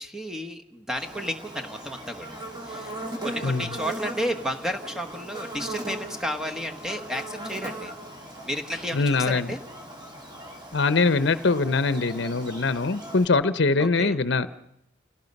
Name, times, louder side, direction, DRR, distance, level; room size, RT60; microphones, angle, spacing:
voice 1, 0.0-7.9 8.4-9.6 13.8-14.1, equal, 5° right, 5 dB, 1.2 m, -32 dB
Buzz, 1.0-13.2, right 1 dB, 25° right, 3.7 m, -38 dB
voice 2, 8.9-9.5 10.7-14.5, left 3 dB, 60° left, 14 dB, 0.8 m, -23 dB
28.5 x 18.0 x 5.4 m, 0.79 s
head